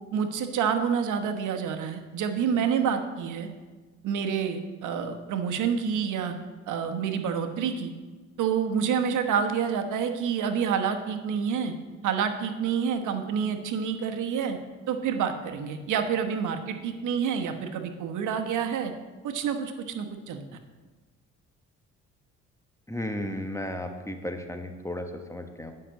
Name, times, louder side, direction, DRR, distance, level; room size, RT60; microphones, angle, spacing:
voice 1, 0.1-3.5 4.0-6.3 6.7-7.9 8.4-11.7 12.0-14.6 14.9-18.9 19.2-20.4, right 7 dB, 80° right, 7 dB, 1.2 m, -28 dB
voice 2, 22.9-25.7, left 1 dB, 10° left, 5 dB, 1.1 m, -34 dB
9.8 x 5.9 x 7.5 m, 1.3 s
cardioid pair, 90°, 30 cm